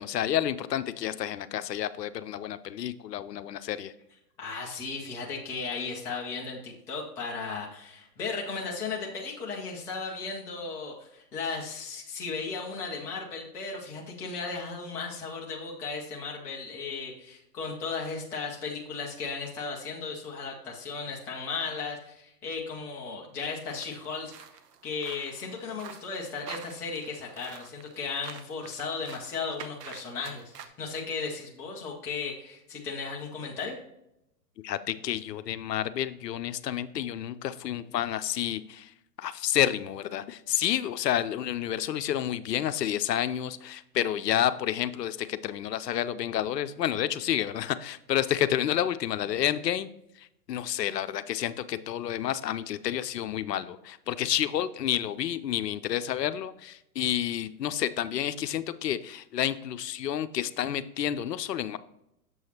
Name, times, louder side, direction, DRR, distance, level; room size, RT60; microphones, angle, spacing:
voice 1, 0.0-3.9 34.6-38.9 39.2-49.9 50.2-61.8, left 11 dB, 80° left, 13 dB, 0.7 m, -30 dB
voice 2, 4.4-24.3 24.8-33.8, left 4 dB, 5° left, -2 dB, 0.3 m, -36 dB
sound 1, 23.7-30.7, right 7 dB, 75° right, 0.9 m, -47 dB
7.0 x 6.3 x 2.8 m, 0.81 s
hypercardioid pair, 115°, 48 cm